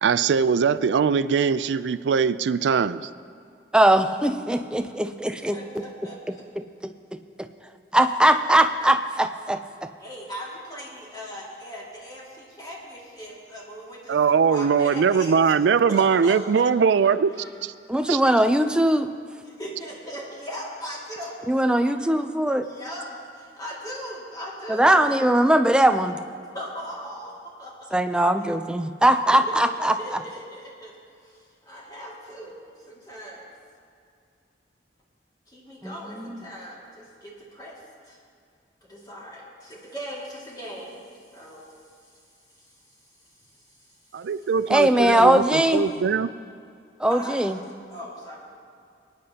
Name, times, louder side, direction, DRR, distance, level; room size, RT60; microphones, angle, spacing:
voice 1, 0.0-3.1 14.1-17.4 17.6-17.7 18.1-18.2 44.1-46.3, right 6 dB, 85° right, 15 dB, 0.4 m, -21 dB
voice 2, 3.7-5.6 6.6-7.5 7.9-9.6 17.9-19.1 21.5-22.7 24.7-26.2 27.9-29.9 35.8-36.4 44.7-45.9 47.0-47.6, right 1 dB, 5° right, 7 dB, 0.5 m, -20 dB
voice 3, 5.3-6.4 10.0-15.4 15.9-16.7 17.3-17.5 18.0-18.5 19.4-21.3 21.8-22.0 22.6-25.2 26.5-28.0 28.4-28.5 29.5-29.6 29.8-30.9 31.2-33.5 35.5-38.2 38.9-41.0 41.3-41.7 42.0-42.1 42.5-42.7 43.4-43.9 44.1-44.5 45.4-45.6 47.1-47.4 47.9-48.4, equal, 25° left, -5 dB, 2.2 m, -39 dB
25.0 x 9.5 x 2.9 m, 2.4 s
head